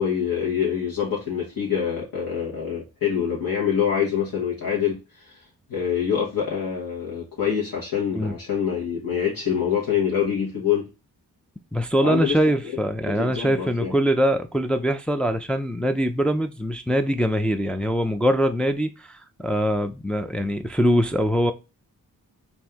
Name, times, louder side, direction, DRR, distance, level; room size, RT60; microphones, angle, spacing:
voice 1, 0.0-5.4 5.7-10.9 12.0-12.4 13.0-13.9, left 8 dB, 65° left, 1.3 m, -25 dB
voice 2, 11.7-21.5, equal, 5° left, 0.3 m, -23 dB
4.3 x 2.7 x 3.5 m
wide cardioid pair, 85°, 37 cm